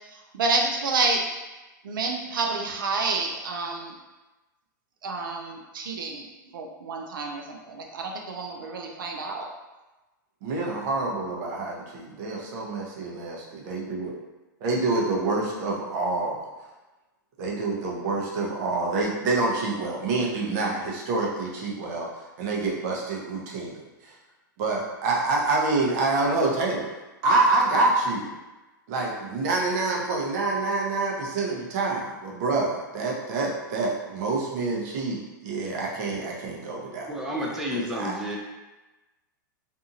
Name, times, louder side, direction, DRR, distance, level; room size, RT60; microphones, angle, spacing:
voice 1, 0.1-1.2 1.8-3.9 5.0-6.2 6.5-9.5, right 3 dB, 85° right, 2 dB, 0.4 m, -29 dB
voice 2, 10.4-14.1 14.6-16.4 17.4-22.1 22.4-23.7 24.0-24.1 24.6-26.9 27.2-28.3 28.9-37.1 38.0-38.1, right 3 dB, 55° right, -2 dB, 0.8 m, -27 dB
voice 3, 37.1-38.4, equal, 5° right, -3 dB, 0.4 m, -30 dB
2.6 x 2.4 x 2.7 m, 1.1 s
hypercardioid pair, 125°, 11 cm